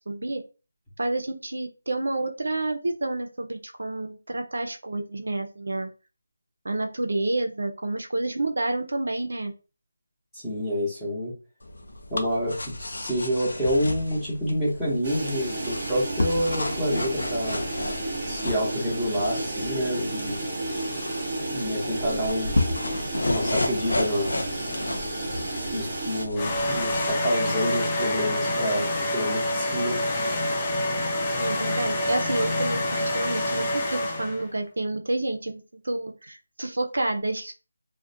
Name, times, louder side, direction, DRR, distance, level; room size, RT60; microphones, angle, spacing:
voice 1, 0.1-0.4 1.0-5.9 6.6-9.5 31.4-37.6, right 2 dB, 70° right, 3 dB, 0.4 m, -29 dB
voice 2, 10.3-11.3 12.1-17.6 18.2-20.4 21.5-22.6 23.2-24.4 25.7-28.9 29.1-30.0, equal, ahead, -10 dB, 0.8 m, -28 dB
sound 1, 11.6-27.1, left 2 dB, 75° left, 0.5 m, -32 dB
sound 2, 15.0-26.3, right 2 dB, 30° right, 0.9 m, -32 dB
sound 3, 26.4-34.5, left 1 dB, 20° left, 0.4 m, -27 dB
2.4 x 2.1 x 2.6 m, 0.33 s
figure-of-eight pair, 170°, 0 cm